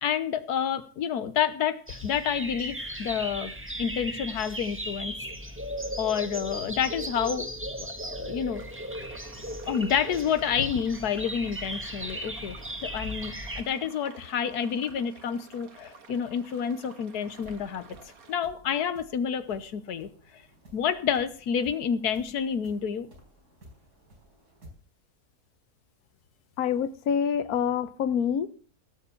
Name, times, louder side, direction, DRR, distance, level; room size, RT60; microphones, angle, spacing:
voice 1, 0.0-3.5 3.8-5.1 6.0-7.5 7.8-8.6 9.7-12.6 12.8-17.9 18.3-20.1 20.7-23.1, left 8 dB, 90° left, 12 dB, 1.5 m, -29 dB
sound 1, 1.9-13.6, equal, 10° right, 1.2 m, -37 dB
sound 2, 8.5-18.4, right 5 dB, 65° right, 1.9 m, -51 dB
sound 3, 17.2-24.7, equal, 90° right, 4.7 m, -55 dB
voice 2, 26.6-28.5, left 8 dB, 70° left, 13 dB, 1.3 m, -26 dB
17.0 x 6.8 x 7.1 m, 0.41 s
omnidirectional pair, 1.6 m